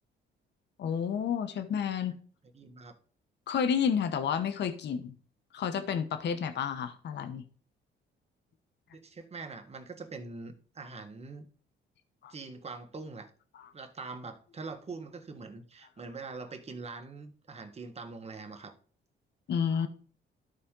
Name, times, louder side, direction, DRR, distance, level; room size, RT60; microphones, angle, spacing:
voice 1, 0.8-2.2 3.5-5.1 5.5-7.4 12.2-12.3 19.5-19.9, left 7 dB, 60° left, 0.9 m, -30 dB
voice 2, 2.5-3.0 8.9-11.5 12.3-13.3 13.7-18.7, right 4 dB, 30° right, 1.4 m, -43 dB
12.5 x 4.3 x 3.7 m
cardioid pair, 90°, 20 cm